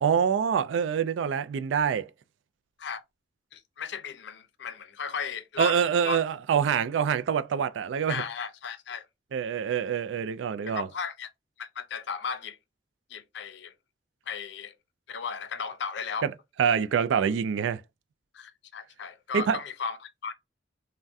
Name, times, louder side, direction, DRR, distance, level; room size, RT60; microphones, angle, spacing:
voice 1, 0.0-2.1 5.6-8.2 9.3-10.9 16.2-16.3 16.6-17.8 19.3-19.6, right 7 dB, 85° right, 0.3 m, -25 dB
voice 2, 3.5-6.2 8.1-9.0 10.7-11.3 11.6-12.6 13.1-13.7 14.3-14.7 15.1-16.3 18.3-20.3, left 6 dB, 65° left, 0.5 m, -35 dB
3.4 x 2.1 x 2.5 m
head